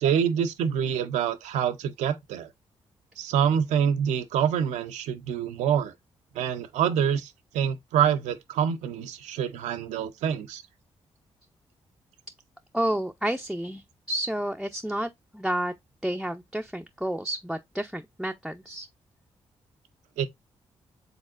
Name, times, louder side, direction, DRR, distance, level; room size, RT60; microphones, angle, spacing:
voice 1, 0.0-2.5 3.2-5.9 6.3-10.6 20.2-20.3, right 8 dB, 85° right, 0.5 m, -26 dB
voice 2, 12.7-15.7 16.0-18.9, right 1 dB, ahead, 0.5 m, -30 dB
5.2 x 3.5 x 2.4 m
supercardioid pair, 50°, 12 cm